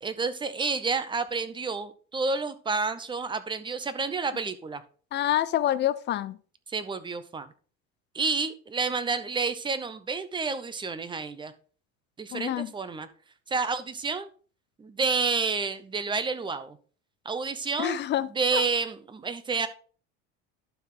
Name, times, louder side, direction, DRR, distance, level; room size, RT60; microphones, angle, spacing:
voice 1, 0.0-4.8 6.7-7.5 8.1-11.5 12.2-13.1 13.5-14.3 14.8-16.8 17.2-18.0 18.3-19.7, right 4 dB, 15° right, 0.6 m, -29 dB
voice 2, 5.1-6.4 12.3-12.7 17.8-18.6, left 12 dB, 35° left, 0.5 m, -27 dB
11.5 x 4.7 x 3.8 m
cardioid pair, 140°, 32 cm